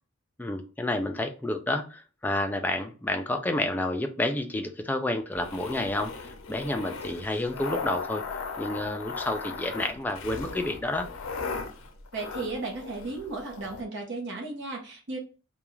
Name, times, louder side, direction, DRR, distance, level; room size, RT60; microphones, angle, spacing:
voice 1, 0.4-8.2 8.6-11.1, left 1 dB, 10° left, 5 dB, 0.3 m, -30 dB
sound 1, 5.3-13.8, left 4 dB, 80° left, 0.5 m, -37 dB
voice 2, 12.1-15.2, right 3 dB, 60° right, 0 dB, 0.7 m, -35 dB
2.4 x 2.3 x 3.0 m, 0.34 s
head